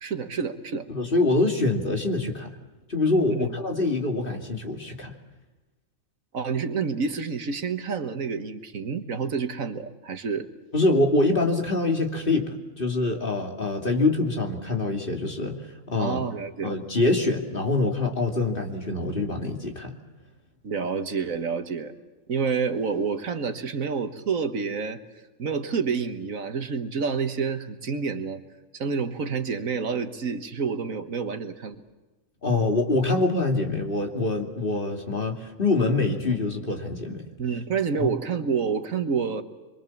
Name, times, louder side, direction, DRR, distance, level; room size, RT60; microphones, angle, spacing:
voice 1, 0.0-0.9 3.3-3.5 6.3-10.5 16.0-16.8 20.6-21.9 22.3-25.0 25.4-28.4 28.7-31.8 37.4-39.4, right 5 dB, 80° right, 8 dB, 1.8 m, -28 dB
voice 2, 0.9-2.5 2.9-5.1 10.7-12.5 12.8-16.2 16.6-19.9 32.4-37.2 38.0-38.1, left 2 dB, 40° left, 3 dB, 2.9 m, -25 dB
26.0 x 23.5 x 7.2 m, 1.1 s
omnidirectional pair, 1.4 m